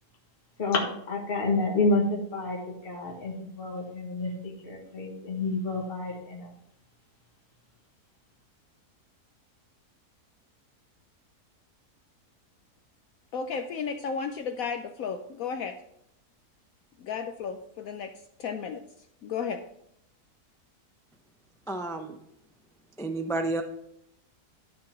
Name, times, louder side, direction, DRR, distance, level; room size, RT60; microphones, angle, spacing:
voice 1, 0.6-6.5, left 2 dB, 35° left, 0 dB, 1.7 m, -29 dB
voice 2, 13.3-15.7 17.0-18.1 18.4-18.8 19.2-19.6, left 6 dB, 65° left, 7 dB, 1.0 m, -33 dB
voice 3, 21.7-22.2 23.0-23.6, right 2 dB, 5° left, 5 dB, 0.3 m, -30 dB
12.5 x 4.4 x 5.9 m, 0.76 s
omnidirectional pair, 1.7 m